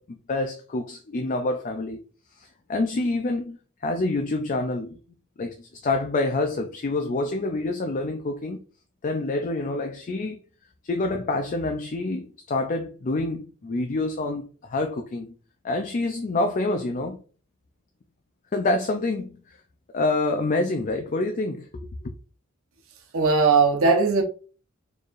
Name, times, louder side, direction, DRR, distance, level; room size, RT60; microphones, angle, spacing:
voice 1, 0.0-2.0 2.4-5.0 5.4-8.6 9.0-10.4 10.8-15.3 15.6-17.2 18.5-19.6 19.9-22.1, left 2 dB, 40° left, 0.4 m, -27 dB
voice 2, 23.1-24.2, right 4 dB, 80° right, 1.0 m, -19 dB
4.4 x 3.2 x 2.5 m
head